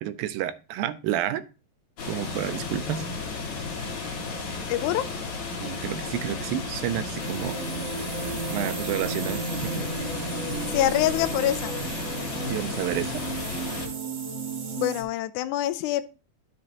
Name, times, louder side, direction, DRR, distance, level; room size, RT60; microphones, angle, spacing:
voice 1, 0.0-1.4 2.1-3.1 5.6-7.6 8.5-9.9 12.5-13.2, right 12 dB, 80° right, 12 dB, 2.2 m, -30 dB
sound 1, 2.0-13.9, left 3 dB, 60° left, 2.9 m, -33 dB
voice 2, 4.7-5.0 10.7-11.8 14.7-16.0, left 13 dB, 85° left, 12 dB, 1.7 m, -25 dB
sound 2, 7.2-15.0, right 4 dB, 55° right, 2.3 m, -34 dB
12.0 x 6.2 x 2.9 m, 0.34 s
omnidirectional pair, 4.2 m